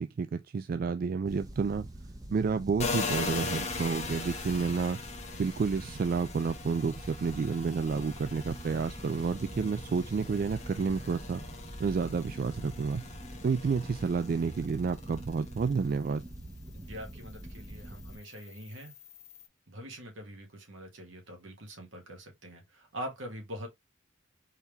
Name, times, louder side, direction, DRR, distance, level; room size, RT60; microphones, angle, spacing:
voice 1, 0.0-1.9 2.3-5.0 5.3-11.4 11.8-13.0 13.4-16.2, right 5 dB, 45° right, 0.3 m, -30 dB
sound 1, 1.2-18.2, right 1 dB, 20° right, 0.8 m, -45 dB
sound 2, 2.8-16.2 16.6-19.5, left 4 dB, 35° left, 0.9 m, -40 dB
voice 2, 16.7-18.9 19.7-23.7, equal, 80° right, 1.8 m, -43 dB
4.6 x 3.5 x 3.3 m
head